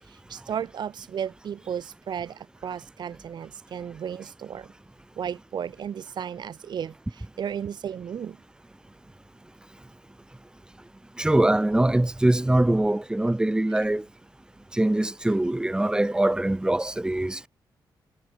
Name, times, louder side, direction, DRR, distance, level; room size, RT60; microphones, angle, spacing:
voice 1, 0.1-4.7 5.2-8.4, right 8 dB, 65° right, 1.6 m, -34 dB
voice 2, 11.2-14.0 14.7-17.5, right 1 dB, 10° right, 2.5 m, -23 dB
cardioid pair, 110°, 8 cm